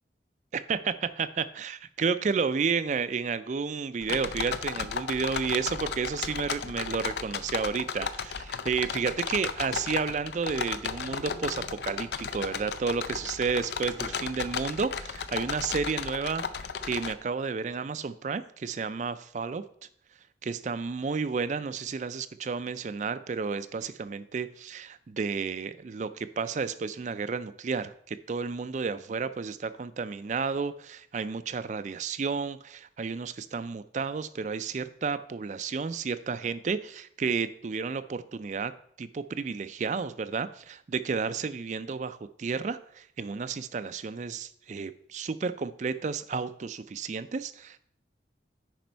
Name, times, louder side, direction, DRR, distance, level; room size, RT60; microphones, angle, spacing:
voice 1, 1.2-19.6 20.4-38.7 39.0-47.8, right 5 dB, 40° right, 13 dB, 0.4 m, -31 dB
sound 1, 4.0-17.1, left 6 dB, 65° left, 0.5 m, -34 dB
9.3 x 5.2 x 4.5 m, 0.65 s
head